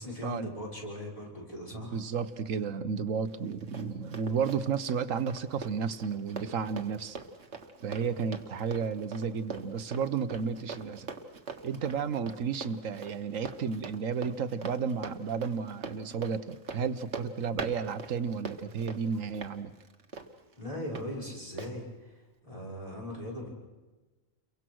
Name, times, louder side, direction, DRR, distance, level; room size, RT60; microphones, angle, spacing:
voice 1, 0.0-1.9 20.6-23.5, left 1 dB, 25° left, -3 dB, 5.8 m, -39 dB
voice 2, 1.9-7.2 7.8-11.1 11.6-19.7, right 6 dB, 70° right, 12 dB, 1.4 m, -32 dB
Run, 3.3-21.1 21.6-21.7, right 4 dB, 55° right, 1.8 m, -43 dB
29.5 x 23.5 x 6.3 m, 1.2 s
omnidirectional pair, 1.4 m